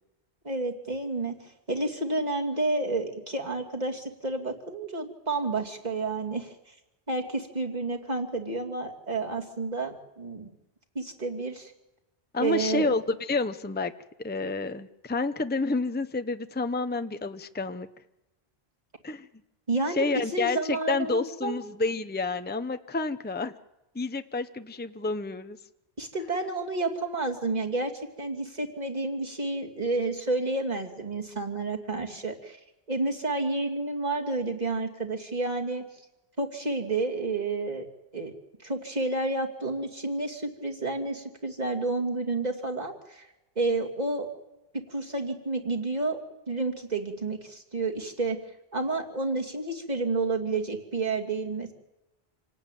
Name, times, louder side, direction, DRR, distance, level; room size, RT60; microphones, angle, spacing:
voice 1, 0.4-6.7 7.1-10.5 10.9-11.7 12.4-12.9 19.7-20.0 20.3-21.6 26.0-27.9 28.2-32.6 32.9-35.8 36.4-37.9 38.1-38.3 38.6-43.3 43.6-44.3 44.7-46.2 46.5-48.4 48.7-51.7, right 3 dB, 40° right, 2 dB, 2.9 m, -30 dB
voice 2, 12.3-13.9 14.2-17.9 19.0-19.3 19.9-23.5 23.9-25.6, left 3 dB, 10° left, 10 dB, 0.8 m, -29 dB
27.5 x 18.0 x 9.2 m, 0.99 s
omnidirectional pair, 1.1 m